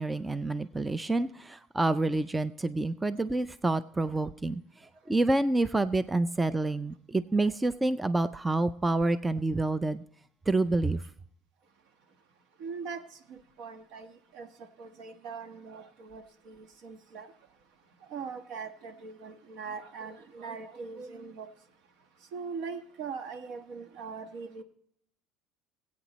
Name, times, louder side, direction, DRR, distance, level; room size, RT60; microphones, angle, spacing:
voice 1, 0.0-4.6 5.1-10.0 10.5-11.0, right 2 dB, 10° right, 0.4 m, -28 dB
voice 2, 12.6-13.0 13.3-14.5 14.8-17.3 18.1-21.5 22.3-24.6, right 5 dB, 70° right, 1.3 m, -41 dB
20.0 x 8.5 x 3.0 m
cardioid pair, 135°, 0 cm